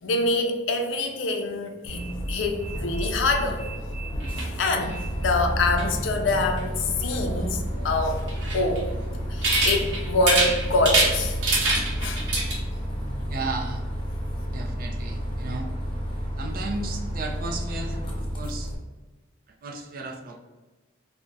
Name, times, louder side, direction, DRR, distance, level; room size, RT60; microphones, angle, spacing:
voice 1, 0.0-3.6 4.4-8.2 8.5-8.9 9.3-11.4 12.0-12.3, left 2 dB, 85° left, 5 dB, 0.4 m, -25 dB
Bus, 1.9-18.8, equal, 25° left, 0.4 m, -31 dB
sound 1, 4.1-12.5, right 2 dB, 80° right, 0.8 m, -28 dB
voice 2, 13.3-13.8 14.5-15.7 16.4-18.0 18.3-18.7 19.6-20.4, right 3 dB, 50° right, 3 dB, 0.4 m, -34 dB
2.3 x 2.0 x 3.9 m, 1.2 s
head